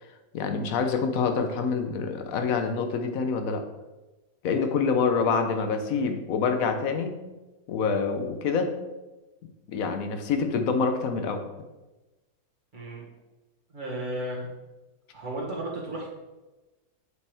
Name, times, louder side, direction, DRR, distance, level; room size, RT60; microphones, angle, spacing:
voice 1, 0.3-3.6 4.4-7.1 7.7-8.7 9.7-11.4, left 5 dB, 60° left, 6 dB, 1.2 m, -26 dB
voice 2, 12.7-13.0 13.7-14.5 15.1-16.1, right 1 dB, 30° right, -5 dB, 2.0 m, -34 dB
7.9 x 5.5 x 3.5 m, 1.1 s
omnidirectional pair, 1.7 m